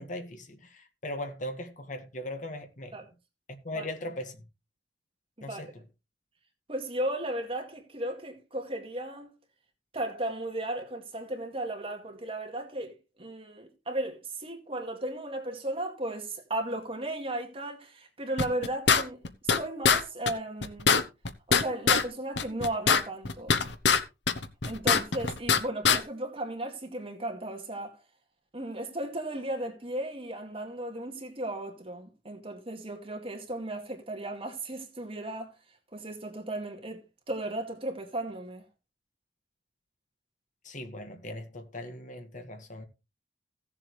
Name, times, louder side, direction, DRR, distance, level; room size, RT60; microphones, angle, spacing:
voice 1, 0.0-2.9 3.6-4.4 5.4-5.7 40.6-42.9, left 1 dB, 45° left, 1.9 m, -39 dB
voice 2, 6.7-9.3 9.9-20.9 21.5-23.6 24.6-28.0 28.5-35.5 35.9-37.0 37.3-38.6, right 1 dB, 30° right, 2.3 m, -35 dB
sound 1, 18.4-19.6 19.8-20.0 20.3-20.4 20.6-22.0 22.4-24.0 24.3-25.6 25.8-26.0, left 6 dB, 75° left, 1.1 m, -23 dB
16.5 x 7.5 x 3.3 m
head